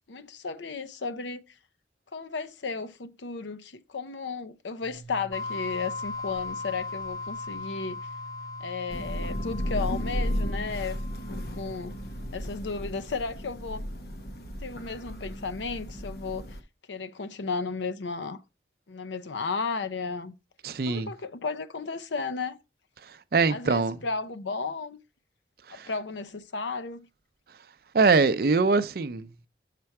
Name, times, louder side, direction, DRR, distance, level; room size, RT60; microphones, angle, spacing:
voice 1, 0.1-1.4 2.1-8.0 8.6-11.0 11.3-12.0 12.3-13.8 14.6-16.6 16.9-18.4 18.9-20.3 20.9-22.6 23.5-25.0 25.7-27.1, left 4 dB, 80° left, 0.6 m, -34 dB
sound 1, 4.8-12.3, right 3 dB, 75° right, 0.8 m, -47 dB
sound 2, 5.3-11.8, left 4 dB, 20° left, 0.4 m, -38 dB
Thunder / Rain, 8.9-16.6, equal, 60° left, 0.9 m, -34 dB
voice 2, 20.6-21.1 23.1-24.0 25.7-25.9 27.9-29.3, right 4 dB, 55° right, 0.5 m, -23 dB
6.7 x 4.3 x 4.7 m
head